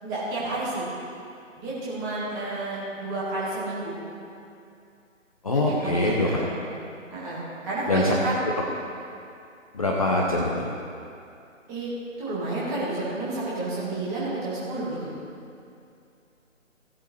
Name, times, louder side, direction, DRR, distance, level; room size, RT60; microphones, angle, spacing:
voice 1, 0.0-0.8 1.6-3.9 5.5-6.5 7.1-8.4 11.7-11.9 12.2-15.1, right 2 dB, 10° right, -8 dB, 1.7 m, -30 dB
voice 2, 5.4-6.4 7.9-8.1 9.7-10.7, left 2 dB, 25° left, -3 dB, 0.8 m, -23 dB
16.5 x 8.1 x 3.2 m, 2.6 s
figure-of-eight pair, 150°, 40 cm